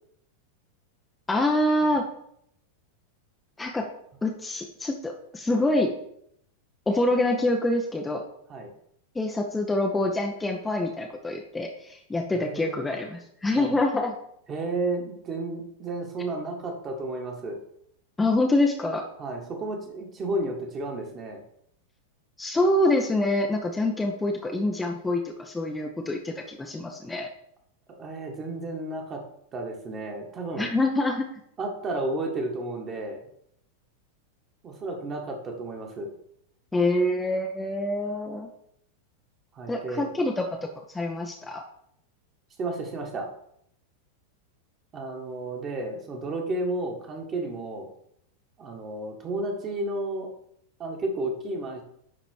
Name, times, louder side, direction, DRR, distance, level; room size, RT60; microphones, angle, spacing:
voice 1, 1.3-2.1 3.6-3.9 4.2-5.9 6.9-8.2 9.1-14.1 18.2-19.0 22.4-27.3 30.6-31.3 36.7-38.5 39.7-40.5 40.9-41.6, left 1 dB, 10° left, 2 dB, 0.8 m, -26 dB
voice 2, 12.3-12.8 13.5-13.8 14.5-17.6 19.2-21.4 28.0-29.2 29.5-30.7 31.6-33.2 34.6-36.1 39.5-40.1 42.6-43.3 44.9-47.9 48.6-50.3 50.8-51.8, right 2 dB, 25° right, 2 dB, 1.7 m, -32 dB
10.5 x 4.0 x 4.7 m, 0.72 s
figure-of-eight pair, 90°, 0 cm